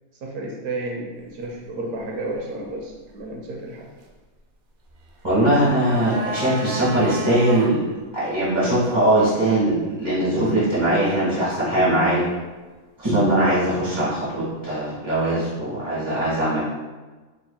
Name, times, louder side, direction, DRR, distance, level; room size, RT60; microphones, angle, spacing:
voice 1, 0.2-3.9, right 2 dB, 80° right, -1 dB, 1.1 m, -32 dB
sound 1, 5.1-7.7 8.0-8.1, right 2 dB, 65° right, 0.7 m, -32 dB
voice 2, 5.2-7.9 8.1-12.3 13.0-16.6, right 1 dB, 20° right, -11 dB, 1.2 m, -21 dB
4.0 x 3.3 x 2.2 m, 1.3 s
omnidirectional pair, 1.5 m